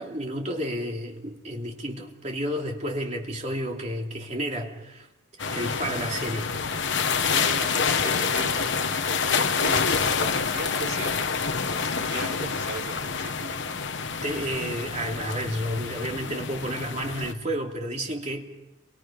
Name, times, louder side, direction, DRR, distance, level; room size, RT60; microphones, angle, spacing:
voice 1, 0.0-5.1 5.5-6.5 11.8-12.0 12.4-12.5 14.2-18.5, equal, 30° right, 2.9 m, -31 dB
sound 1, 5.4-17.3, left 5 dB, 55° left, 1.1 m, -27 dB
voice 2, 7.3-11.2 11.9-13.6, right 2 dB, 90° right, 5.4 m, -37 dB
30.0 x 24.5 x 5.2 m
head